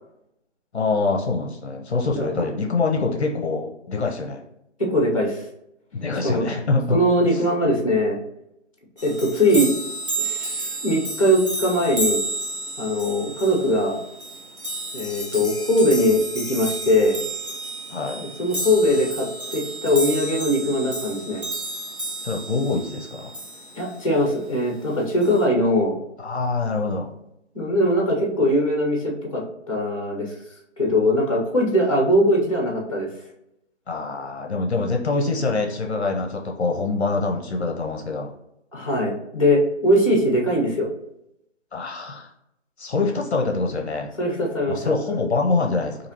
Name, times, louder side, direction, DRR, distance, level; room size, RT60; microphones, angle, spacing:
voice 1, 0.7-4.4 5.9-7.0 7.3-7.4 17.9-18.2 22.2-23.3 26.2-27.1 33.9-38.3 41.7-42.3 42.8-44.1 44.7-46.0, left 3 dB, 60° left, 2 dB, 0.6 m, -25 dB
voice 2, 4.8-5.4 6.2-6.5 6.9-8.2 9.0-9.7 10.2-12.2 12.8-14.0 14.9-17.2 18.2-21.4 23.8-26.0 27.5-30.3 30.8-33.1 38.7-40.9 44.2-44.8, equal, 30° left, -1 dB, 0.7 m, -21 dB
sound 1, 9.0-24.0 25.2-25.4, right 1 dB, 45° right, 1.3 m, -31 dB
4.2 x 2.7 x 2.8 m, 0.82 s
hypercardioid pair, 180°, 36 cm